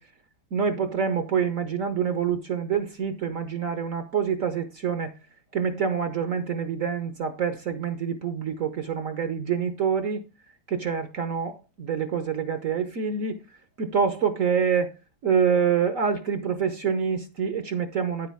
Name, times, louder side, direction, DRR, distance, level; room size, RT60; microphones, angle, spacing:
voice 1, 0.5-5.1 5.5-10.2 10.7-13.4 13.8-14.9 15.2-18.3, right 7 dB, 55° right, 1.1 m, -26 dB
9.8 x 8.3 x 3.5 m
omnidirectional pair, 2.0 m